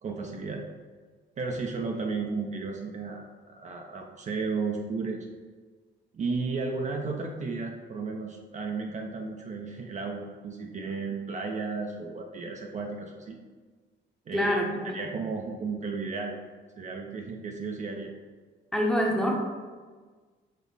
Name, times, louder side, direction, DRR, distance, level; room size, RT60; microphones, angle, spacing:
voice 1, 0.0-0.6 1.4-5.3 6.1-13.4 14.3-14.6 14.9-16.4 16.8-18.1, right 4 dB, 40° right, 1 dB, 0.4 m, -34 dB
voice 2, 14.3-15.0 18.7-19.4, equal, 5° left, -1 dB, 0.7 m, -26 dB
5.2 x 2.0 x 3.9 m, 1.4 s
cardioid pair, 90°, 20 cm